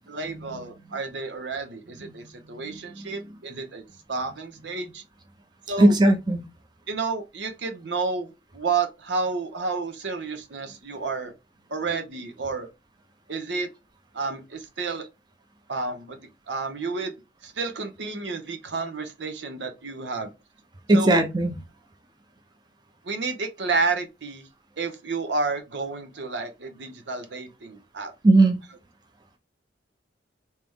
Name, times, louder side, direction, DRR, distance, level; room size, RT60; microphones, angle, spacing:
voice 1, 0.1-3.8 4.1-5.0 5.7-5.9 6.9-11.3 11.7-12.7 13.3-13.7 14.1-15.1 15.7-16.2 16.5-17.1 17.4-20.3 20.9-21.2 23.0-24.4 24.8-28.1, right 4 dB, 90° right, 0.9 m, -30 dB
voice 2, 5.8-6.4 20.9-21.5 28.2-28.6, right 2 dB, 25° right, 0.7 m, -18 dB
3.2 x 2.9 x 3.5 m
head